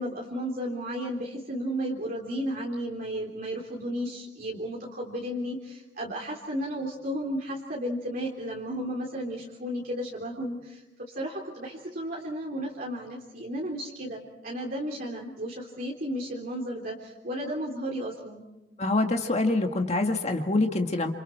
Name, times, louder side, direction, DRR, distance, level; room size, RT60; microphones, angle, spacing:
voice 1, 0.0-18.4, equal, 50° right, -3 dB, 3.5 m, -33 dB
voice 2, 18.8-21.1, left 2 dB, 35° left, 4 dB, 1.9 m, -25 dB
29.0 x 28.5 x 4.4 m, 0.93 s
head